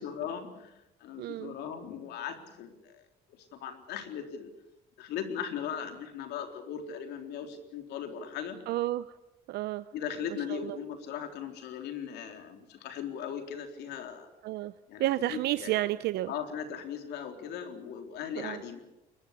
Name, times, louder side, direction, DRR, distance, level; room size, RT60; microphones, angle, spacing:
voice 1, 0.0-3.0 3.5-4.5 5.0-8.6 9.9-14.3 14.9-15.8 16.3-18.8, left 8 dB, 80° left, 6 dB, 3.8 m, -38 dB
voice 2, 1.2-1.5 8.7-9.0 9.5-9.8 10.5-10.8 14.4-14.7 15.0-16.3 18.4-18.6, right 15 dB, 75° right, 13 dB, 0.8 m, -31 dB
22.0 x 21.5 x 8.4 m, 0.97 s
cardioid pair, 110°, 17 cm